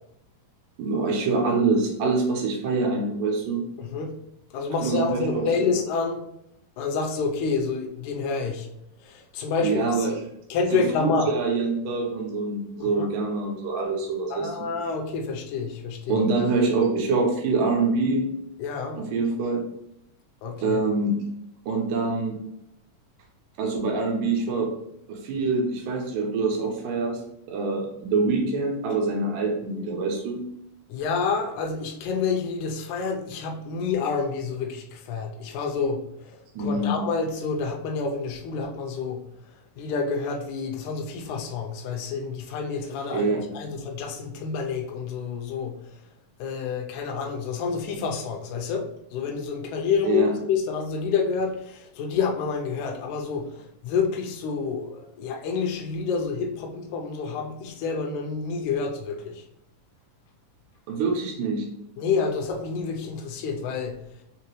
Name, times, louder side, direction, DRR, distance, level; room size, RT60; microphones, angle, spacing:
voice 1, 0.8-3.7 4.8-5.4 9.6-10.2 10.7-14.5 16.1-18.3 19.0-19.6 20.6-21.2 21.7-22.4 23.6-24.7 25.1-27.2 27.5-30.4 36.5-36.9 43.1-43.4 50.0-50.3 60.9-61.7, right 3 dB, 80° right, 1 dB, 2.5 m, -25 dB
voice 2, 3.8-4.1 4.5-6.2 6.8-8.7 9.0-10.1 10.5-11.3 12.8-13.1 14.3-16.5 18.6-19.0 20.4-20.8 30.9-39.2 39.8-45.8 46.4-53.6 53.8-59.4 62.0-64.0, left 5 dB, 75° left, 1 dB, 1.9 m, -28 dB
5.8 x 3.0 x 3.1 m, 0.78 s
omnidirectional pair, 3.9 m